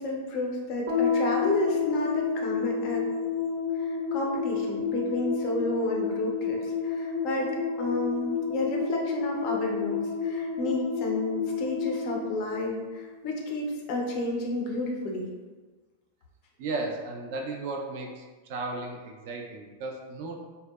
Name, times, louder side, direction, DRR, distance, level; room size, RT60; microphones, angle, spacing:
voice 1, 0.0-3.1 3.7-7.5 7.8-15.3, left 2 dB, 35° left, 0 dB, 0.4 m, -31 dB
sound 1, 0.9-13.4, left 5 dB, 80° right, 0.7 m, -30 dB
voice 2, 16.6-20.4, right 3 dB, 45° right, 1 dB, 0.3 m, -35 dB
2.6 x 2.1 x 2.2 m, 1.3 s
supercardioid pair, 175°, 0 cm